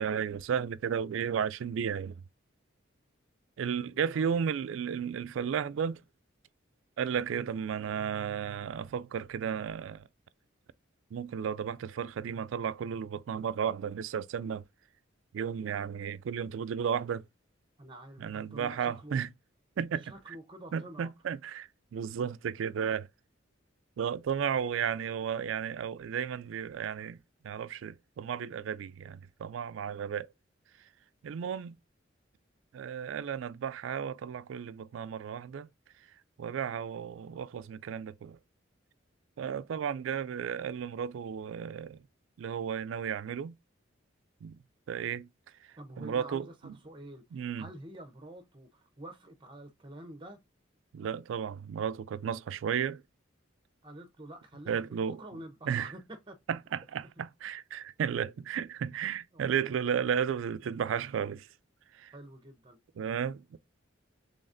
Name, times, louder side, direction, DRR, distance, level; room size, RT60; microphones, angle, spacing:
voice 1, 0.0-2.1 3.6-6.0 7.0-10.0 11.1-14.6 15.3-17.2 18.2-19.3 19.8-20.1 20.7-23.1 24.0-27.2 27.4-30.3 31.2-31.8 32.7-35.7 36.4-38.4 39.4-42.0 42.4-43.5 44.4-44.6 44.9-45.3 46.0-46.7 47.3-47.6 50.9-53.0 54.7-55.2 55.7-55.9 56.5-61.5 62.0-62.1 63.0-63.6, right 7 dB, 75° right, 0.3 m, -33 dB
voice 2, 3.8-4.3 17.8-19.2 20.0-21.1 45.8-47.2 47.6-50.4 53.8-56.4 59.3-60.0 62.1-62.8, right 1 dB, 25° right, 0.7 m, -48 dB
4.0 x 3.4 x 2.5 m
head